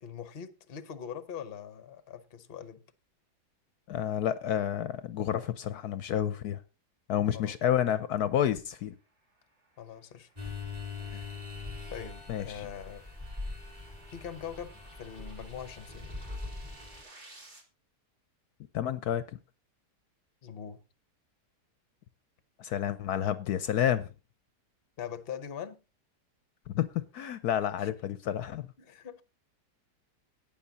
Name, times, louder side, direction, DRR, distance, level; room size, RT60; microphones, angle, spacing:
voice 1, 0.0-2.8 7.3-7.5 9.8-10.7 11.1-11.3 11.9-13.0 14.1-14.7 15.0-16.2 20.4-20.8 25.0-25.8 27.8-27.9 28.8-29.2, left 8 dB, 40° left, 1.0 m, -42 dB
voice 2, 3.9-6.6 7.1-8.9 12.3-12.7 18.7-19.2 22.6-24.1 26.7-28.7, left 10 dB, 70° left, 1.2 m, -30 dB
sound 1, 8.7-17.6, right 2 dB, 40° right, 2.6 m, -58 dB
sound 2, 10.4-17.0, left 3 dB, 20° right, 4.7 m, -42 dB
17.5 x 6.1 x 4.1 m
omnidirectional pair, 1.8 m